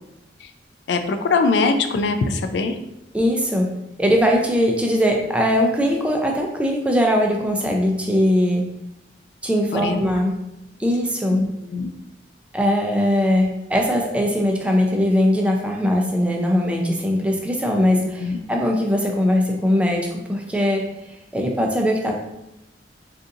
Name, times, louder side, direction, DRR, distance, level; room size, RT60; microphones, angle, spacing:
voice 1, 0.9-2.8 9.7-10.0 11.3-11.9 18.2-18.4, left 4 dB, 70° left, 7 dB, 0.3 m, -22 dB
voice 2, 3.1-3.7 4.0-8.7 9.4-10.3 10.8-11.4 12.5-20.9 21.3-22.2, equal, 5° right, 1 dB, 0.4 m, -20 dB
3.8 x 2.5 x 2.6 m, 0.86 s
head